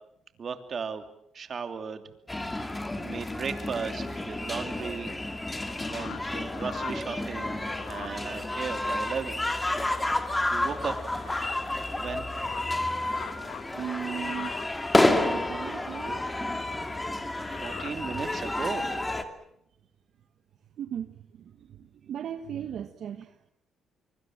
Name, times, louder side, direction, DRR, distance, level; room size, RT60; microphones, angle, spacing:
voice 1, 0.4-1.0 1.3-2.0 3.0-5.1 5.8-7.6 7.9-9.4 9.8-9.9 10.5-11.0 11.9-12.2 17.4-18.8, right 6 dB, 50° right, 7 dB, 2.9 m, -35 dB
sound 1, 2.3-19.2, left 2 dB, 15° left, 2.6 m, -30 dB
sound 2, 5.6-9.3 9.5-18.3, left 11 dB, 85° left, 1.5 m, -46 dB
voice 2, 13.7-14.6 14.9-16.3 16.7-16.8 17.9-18.3 20.8-23.5, right 9 dB, 65° right, 8 dB, 1.3 m, -38 dB
25.0 x 24.0 x 7.6 m, 0.76 s
cardioid pair, 90°, 0 cm